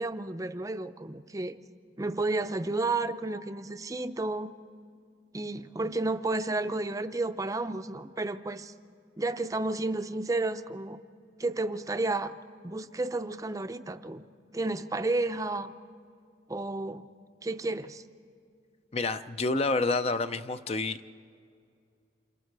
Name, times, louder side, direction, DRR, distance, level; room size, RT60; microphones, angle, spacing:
voice 1, 0.0-1.6 2.0-4.5 5.3-8.7 9.2-11.0 11.4-12.3 12.6-14.2 14.5-15.7 16.5-17.1 17.4-18.0, right 2 dB, 20° right, 10 dB, 0.5 m, -31 dB
voice 2, 18.9-21.1, left 3 dB, 35° left, 11 dB, 0.5 m, -29 dB
28.0 x 27.0 x 4.7 m, 2.3 s
head